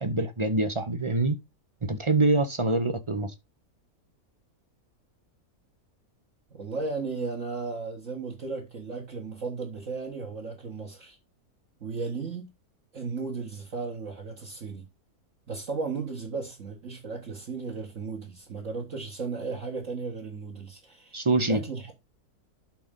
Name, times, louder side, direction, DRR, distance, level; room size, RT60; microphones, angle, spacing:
voice 1, 0.0-1.4 1.8-3.3 21.1-21.6, right 2 dB, 25° right, 0.7 m, -25 dB
voice 2, 6.5-11.2 11.8-12.5 12.9-14.8 15.5-21.9, right 4 dB, 55° right, 2.0 m, -35 dB
11.5 x 4.0 x 3.7 m
omnidirectional pair, 1.6 m